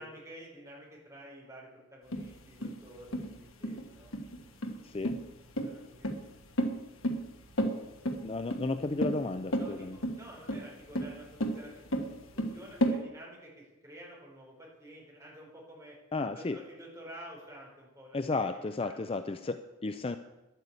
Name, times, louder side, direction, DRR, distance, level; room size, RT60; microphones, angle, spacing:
voice 1, 0.0-4.2 5.4-6.1 9.6-11.9 12.3-16.0 16.3-19.0, equal, 15° right, -3 dB, 4.4 m, -50 dB
sound 1, 2.1-13.0, equal, 75° left, 1.4 m, -33 dB
voice 2, 4.8-5.2 8.2-10.0 16.1-16.6 18.1-20.2, left 3 dB, 25° left, 9 dB, 0.4 m, -33 dB
11.0 x 9.0 x 8.2 m, 1.1 s
head